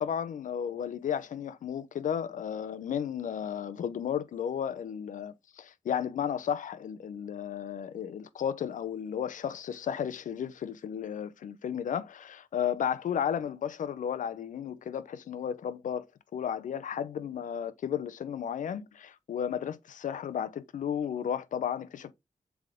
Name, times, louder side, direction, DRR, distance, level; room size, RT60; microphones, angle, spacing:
voice 1, 0.0-16.0 16.3-22.1, left 8 dB, 85° left, 0.6 m, -33 dB
7.5 x 3.6 x 3.6 m
cardioid pair, 45°, 13 cm